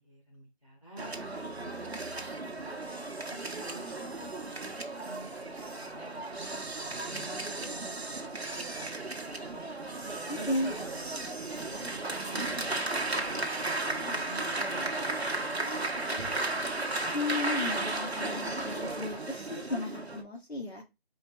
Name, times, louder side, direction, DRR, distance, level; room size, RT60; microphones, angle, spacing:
voice 1, 0.0-1.7 2.4-4.3 5.0-7.9 8.2-8.9 9.3-9.7 10.3-11.1 11.5-16.3, right 2 dB, 30° left, -1 dB, 0.9 m, -50 dB
sound 1, 1.0-20.2, right 2 dB, 90° right, 1.0 m, -35 dB
voice 2, 10.3-10.7 17.1-20.8, left 2 dB, 90° left, 2 dB, 1.5 m, -34 dB
sound 2, 10.3-18.9, equal, 70° left, 2.3 m, -52 dB
4.3 x 2.2 x 4.4 m, 0.24 s
figure-of-eight pair, 180°, 31 cm